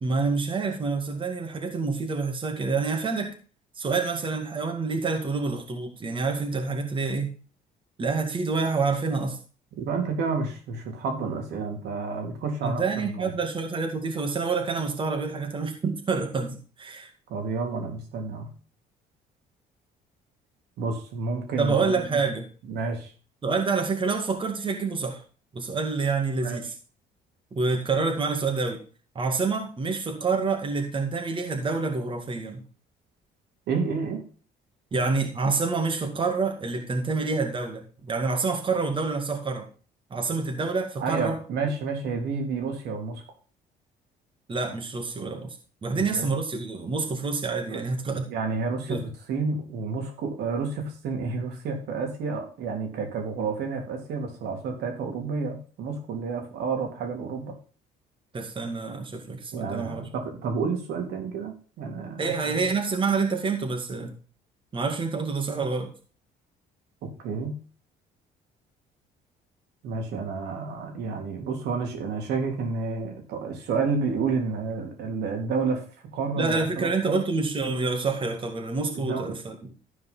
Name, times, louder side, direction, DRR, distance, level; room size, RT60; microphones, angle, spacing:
voice 1, 0.0-3.3 3.8-7.3 8.0-9.4 12.6-17.1 21.6-22.4 23.4-25.2 25.5-26.7 27.5-28.8 29.1-32.6 34.9-39.7 40.1-41.4 44.5-45.6 45.8-48.2 48.9-49.0 58.3-60.0 62.2-64.1 64.7-65.9 76.4-79.7, right 4 dB, 30° right, 3 dB, 2.3 m, -27 dB
voice 2, 9.8-13.3 17.3-18.5 20.8-22.2 22.7-23.1 26.4-26.6 33.7-34.2 41.0-43.2 45.9-46.3 47.7-47.8 48.3-49.0 49.3-57.5 59.5-62.7 67.2-67.6 69.8-75.8 76.1-77.2 78.9-79.3, right 4 dB, 80° right, 3 dB, 3.5 m, -30 dB
13.0 x 5.0 x 5.7 m, 0.38 s
cardioid pair, 110°, 17 cm